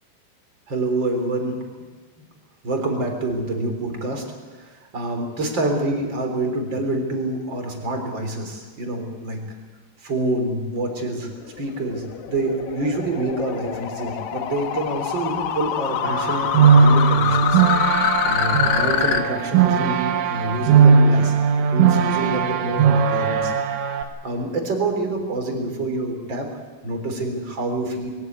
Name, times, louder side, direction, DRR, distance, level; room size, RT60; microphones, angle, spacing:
voice 1, 0.7-1.6 2.2-2.3 2.6-4.2 4.6-9.4 10.0-11.3 11.6-17.6 18.2-23.5 23.9-26.5 26.8-28.1, right 2 dB, 25° right, 4 dB, 3.5 m, -27 dB
sound 1, 11.2-19.2, left 10 dB, 70° left, 2.8 m, -25 dB
sound 2, 16.0-24.0, right 6 dB, 85° right, 4.0 m, -18 dB
22.0 x 17.0 x 9.4 m, 1.4 s
omnidirectional pair, 5.7 m